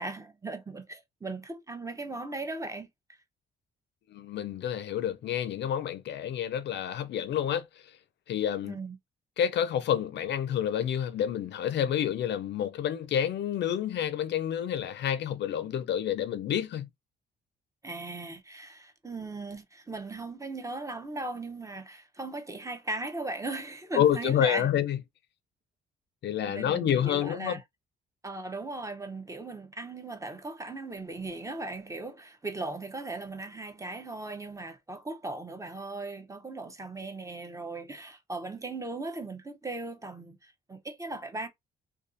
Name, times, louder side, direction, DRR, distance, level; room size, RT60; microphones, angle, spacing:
voice 1, 0.0-3.2 8.7-9.0 17.8-24.7 26.5-27.6 28.2-41.5, right 2 dB, 15° right, 0.6 m, -38 dB
voice 2, 4.1-7.6 8.3-8.8 9.4-16.9 24.0-25.0 26.2-27.6, left 9 dB, 60° left, 0.4 m, -28 dB
2.5 x 2.3 x 2.5 m
cardioid pair, 90°, 20 cm